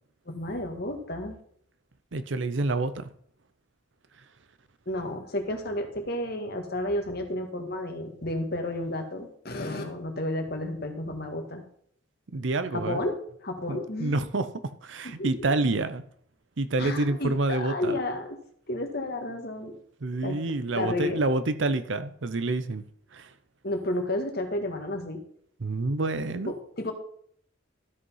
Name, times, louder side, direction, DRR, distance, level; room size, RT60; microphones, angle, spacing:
voice 1, 0.3-1.4 4.9-11.6 12.7-14.2 15.0-15.3 16.8-18.4 18.7-19.7 20.2-20.4 20.7-21.2 23.6-25.2 26.5-26.9, left 1 dB, 55° left, 4 dB, 1.8 m, -32 dB
voice 2, 2.1-3.1 12.3-13.0 13.7-16.0 16.6-18.0 20.0-22.8 23.1-23.3 25.6-26.5, right 2 dB, 70° right, 12 dB, 0.7 m, -28 dB
13.0 x 5.3 x 5.6 m, 0.63 s
head